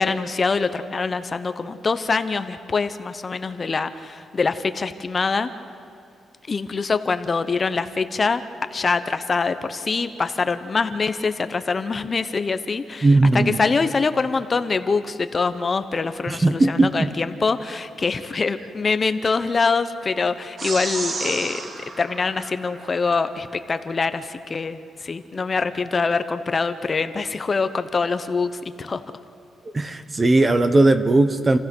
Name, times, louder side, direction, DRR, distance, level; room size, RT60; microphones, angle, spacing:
voice 1, 0.0-5.5 6.5-8.4 8.7-21.6 22.0-28.5 28.8-29.0, left 4 dB, 35° left, 10 dB, 0.8 m, -24 dB
voice 2, 13.0-13.6 16.3-17.1 29.7-31.6, right 2 dB, 25° right, 10 dB, 1.2 m, -18 dB
sound 1, 20.6-23.2, right 3 dB, 40° right, 1.7 m, -32 dB
29.0 x 15.5 x 6.2 m, 2.6 s
cardioid pair, 105°, 0 cm